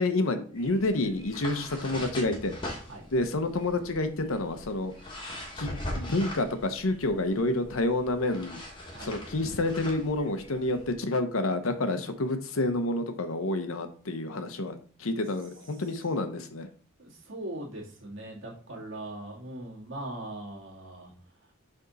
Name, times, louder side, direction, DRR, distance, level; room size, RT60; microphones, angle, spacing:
voice 1, 0.0-2.5 3.1-4.9 5.6-8.6 9.0-16.7, left 2 dB, 80° left, 9 dB, 0.8 m, -29 dB
sound 1, 0.5-11.0, left 1 dB, 20° left, 1.3 m, -41 dB
voice 2, 17.0-21.1 21.5-21.6, right 1 dB, 65° right, -3 dB, 2.2 m, -40 dB
6.6 x 3.5 x 4.0 m, 0.42 s
head